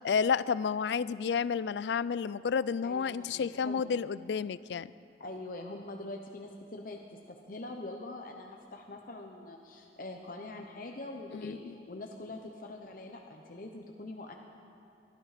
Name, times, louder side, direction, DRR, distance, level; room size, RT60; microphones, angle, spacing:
voice 1, 0.0-4.9 11.3-11.7, left 6 dB, 75° left, 18 dB, 0.4 m, -31 dB
voice 2, 2.8-3.8 5.2-14.4, left 2 dB, 50° left, 2 dB, 0.9 m, -44 dB
21.0 x 13.0 x 5.0 m, 2.7 s
head